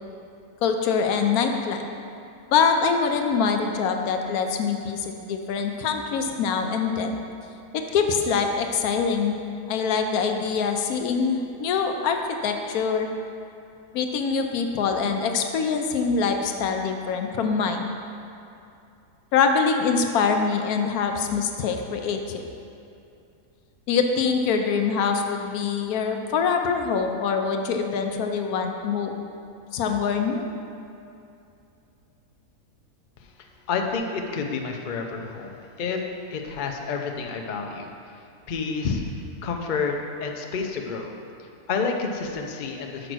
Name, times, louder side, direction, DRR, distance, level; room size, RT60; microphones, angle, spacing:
voice 1, 0.6-1.8 2.5-7.2 7.7-9.4 9.7-13.1 13.9-17.9 19.3-22.4 23.9-29.3 29.7-30.4, left 5 dB, 80° left, 5 dB, 1.1 m, -24 dB
voice 2, 33.7-36.0 36.3-37.9 38.5-39.0 39.4-41.1 41.7-43.1, left 5 dB, 55° left, 3 dB, 0.5 m, -29 dB
6.4 x 5.1 x 6.1 m, 2.6 s
omnidirectional pair, 1.6 m